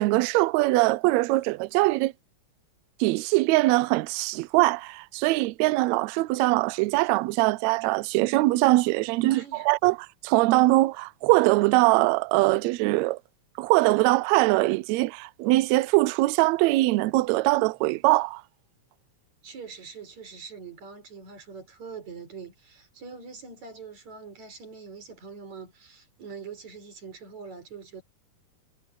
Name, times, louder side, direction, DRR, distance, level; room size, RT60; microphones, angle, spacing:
voice 1, 0.0-2.1 3.0-10.0 10.2-13.2 13.6-18.4, right 20 dB, 90° right, 1.5 m, -22 dB
voice 2, 9.3-9.7 19.4-28.0, right 5 dB, 60° right, 6.4 m, -43 dB
omnidirectional pair, 3.7 m